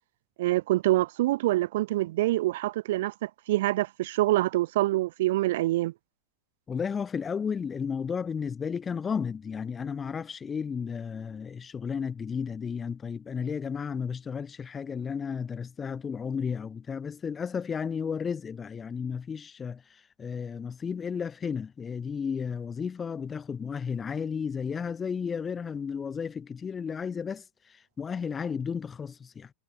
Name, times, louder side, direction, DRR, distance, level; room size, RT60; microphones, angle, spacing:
voice 1, 0.4-5.9, right 16 dB, 55° right, 0.9 m, -26 dB
voice 2, 6.7-29.5, left 6 dB, 20° left, 1.6 m, -33 dB
figure-of-eight pair, 90°, 0 cm